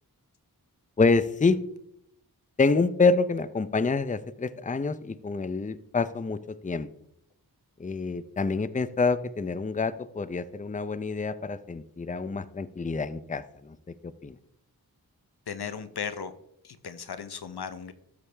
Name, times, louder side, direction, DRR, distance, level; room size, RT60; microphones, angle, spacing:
voice 1, 1.0-1.6 2.6-6.9 7.8-13.8 14.0-14.4, left 4 dB, 20° left, 14 dB, 0.5 m, -27 dB
voice 2, 15.5-16.3 16.6-17.9, left 6 dB, 85° left, 11 dB, 0.8 m, -36 dB
13.0 x 7.0 x 3.4 m, 0.76 s
wide cardioid pair, 45°, 38 cm